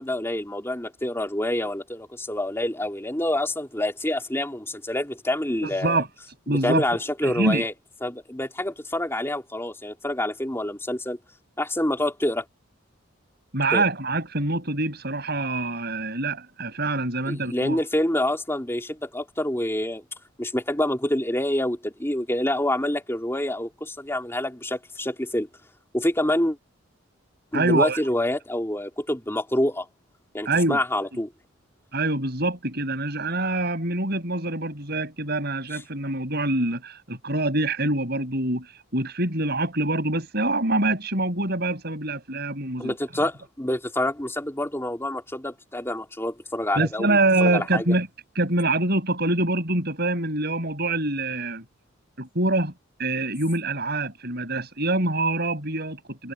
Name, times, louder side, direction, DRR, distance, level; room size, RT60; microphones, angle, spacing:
voice 1, 0.0-6.0 6.5-7.7 8.0-11.2 11.6-12.4 13.7-13.8 17.3-20.0 20.4-25.5 25.9-26.6 27.5-29.9 30.3-31.3 42.8-47.8, left 1 dB, 10° left, 3.8 m, -27 dB
voice 2, 5.6-6.1 6.5-6.8 7.2-7.6 13.5-17.8 27.5-28.0 30.4-30.8 31.9-42.9 46.8-48.1 48.3-51.6 52.2-52.7 53.0-56.3, right 2 dB, 50° right, 7.6 m, -25 dB
head